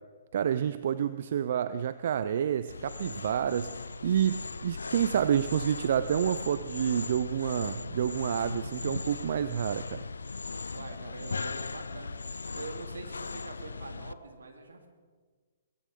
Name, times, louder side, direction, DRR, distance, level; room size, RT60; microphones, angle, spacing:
voice 1, 0.3-10.0, right 9 dB, 60° right, 13 dB, 0.5 m, -29 dB
sound 1, 2.7-14.1, left 4 dB, 90° left, 0.5 m, -38 dB
voice 2, 10.7-12.2 12.5-14.9, right 4 dB, 80° right, 5 dB, 2.3 m, -44 dB
20.0 x 15.5 x 3.7 m, 1.5 s
hypercardioid pair, 135°, 0 cm